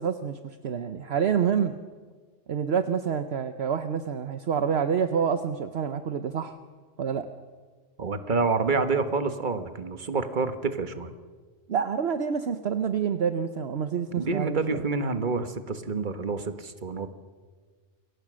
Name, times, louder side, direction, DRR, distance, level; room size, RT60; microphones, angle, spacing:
voice 1, 0.0-1.8 2.5-6.6 7.0-7.3 11.7-14.8, right 7 dB, 60° right, 9 dB, 1.1 m, -27 dB
voice 2, 8.0-11.1 14.2-17.1, right 4 dB, 40° right, 9 dB, 1.5 m, -28 dB
28.0 x 22.5 x 6.3 m, 1.5 s
omnidirectional pair, 1.3 m